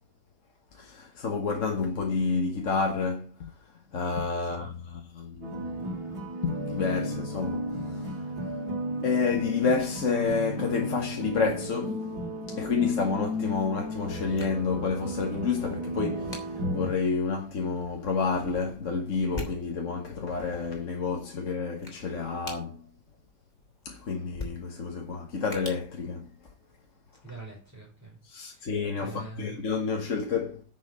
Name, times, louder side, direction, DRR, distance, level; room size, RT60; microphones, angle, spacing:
voice 1, 0.7-3.5 3.9-6.0 6.4-8.2 9.0-12.2 12.5-22.9 23.8-26.3 28.2-30.6, left 5 dB, 50° left, 1.6 m, -29 dB
voice 2, 4.4-4.8 27.2-28.7 29.0-29.6, right 3 dB, 10° right, 5.3 m, -45 dB
sound 1, 5.4-16.9, equal, 70° right, 3.2 m, -34 dB
sound 2, 13.3-26.9, left 1 dB, 25° left, 3.4 m, -47 dB
10.5 x 6.5 x 7.4 m
omnidirectional pair, 1.7 m